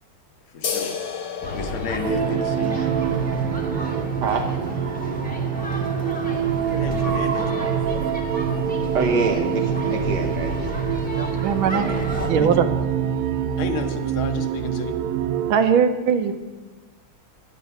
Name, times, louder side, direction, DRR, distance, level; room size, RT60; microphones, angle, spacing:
voice 1, 0.5-1.0 1.5-2.8 6.7-7.8 11.7-12.5 13.6-15.0, left 5 dB, 75° left, 6 dB, 1.7 m, -32 dB
sound 1, 0.6-7.8, left 6 dB, 55° left, 1.2 m, -36 dB
sound 2, 1.4-12.3, equal, 5° left, 1.1 m, -31 dB
sound 3, 2.0-15.5, right 9 dB, 90° right, 1.5 m, -25 dB
voice 2, 8.9-11.0, right 4 dB, 60° right, 3 dB, 1.6 m, -25 dB
voice 3, 11.1-11.9 12.3-12.7 15.5-16.3, right 7 dB, 75° right, 9 dB, 1.5 m, -20 dB
9.6 x 9.3 x 5.8 m, 1.3 s
omnidirectional pair, 2.3 m